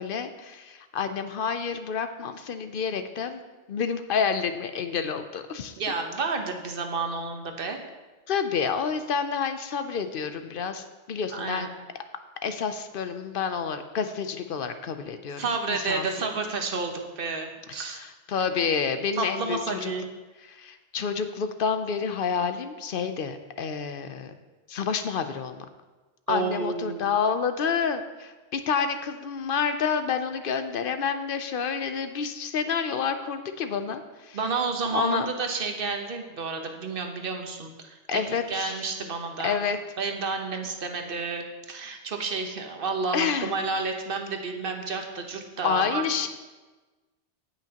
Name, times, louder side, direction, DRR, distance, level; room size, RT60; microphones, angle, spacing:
voice 1, 0.0-3.4 3.7-5.7 8.3-11.7 12.4-16.1 17.9-19.9 20.4-24.3 24.7-25.6 26.3-34.4 34.9-35.3 38.1-38.8 39.4-39.8 43.1-43.5 45.6-46.3, left 6 dB, 60° left, 9 dB, 0.7 m, -29 dB
voice 2, 5.8-7.8 11.3-11.7 15.4-18.0 19.2-20.0 26.3-27.1 34.3-39.6 40.0-46.0, right 4 dB, 55° right, 5 dB, 1.1 m, -30 dB
17.0 x 5.9 x 2.9 m, 1.2 s
omnidirectional pair, 1.2 m